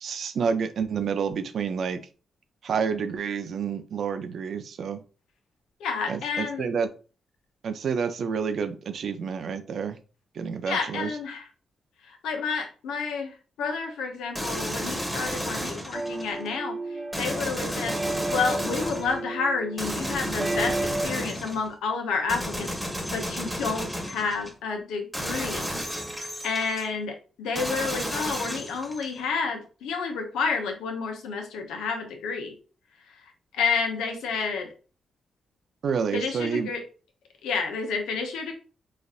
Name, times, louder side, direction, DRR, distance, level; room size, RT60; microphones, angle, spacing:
voice 1, 0.0-2.0 2.6-5.0 6.1-6.9 7.6-10.0 10.4-11.1 35.8-36.7, right 6 dB, 70° right, 9 dB, 0.5 m, -29 dB
voice 2, 5.8-6.7 10.6-11.5 12.1-16.8 17.2-18.0 18.3-22.8 23.1-25.7 26.1-32.5 33.5-34.7 36.1-36.8 37.4-38.5, left 5 dB, 90° left, 3 dB, 0.7 m, -30 dB
sound 1, 14.3-16.4 17.1-19.2 19.8-21.7 22.3-24.5 25.1-26.9 27.6-29.2, equal, 5° right, 1.2 m, -32 dB
sound 2, 15.9-21.1, right 2 dB, 30° right, 0.7 m, -33 dB
4.1 x 2.5 x 2.4 m, 0.36 s
supercardioid pair, 55°, 0 cm